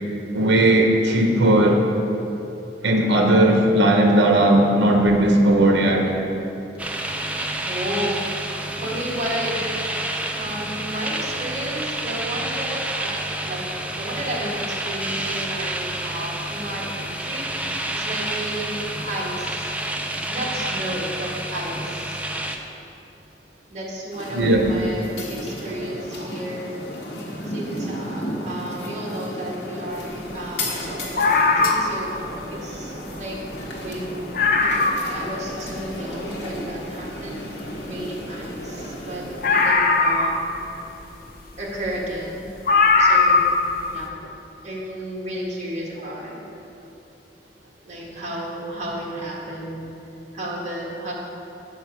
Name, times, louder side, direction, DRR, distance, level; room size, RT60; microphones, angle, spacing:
voice 1, 0.3-1.8 2.8-6.1 24.3-24.6, right 1 dB, 80° right, 2 dB, 0.8 m, -17 dB
sound 1, 6.8-22.6, right 1 dB, 10° right, 0.4 m, -29 dB
voice 2, 7.6-8.2 8.8-9.6 10.4-13.1 13.4-13.6 13.9-17.5 17.9-19.7 20.3-22.2 23.7-26.6 27.4-32.1 32.5-33.4 33.8-34.2 34.6-37.4 37.9-40.6 41.6-42.5 43.0-43.5 43.9-44.1 44.6-46.4 47.8-49.9 50.3-51.1, right 1 dB, 40° right, -4 dB, 1.6 m, -32 dB
sound 2, 24.1-39.7, equal, 80° left, 1.3 m, -34 dB
sound 3, 31.2-32.1 33.2-33.3 33.6-33.7 34.0-34.1 34.3-35.2 35.7-35.8 39.4-40.7 41.9-42.0 42.7-43.6 43.9-44.0, left 4 dB, 55° left, 0.6 m, -18 dB
7.5 x 5.8 x 4.5 m, 2.9 s
head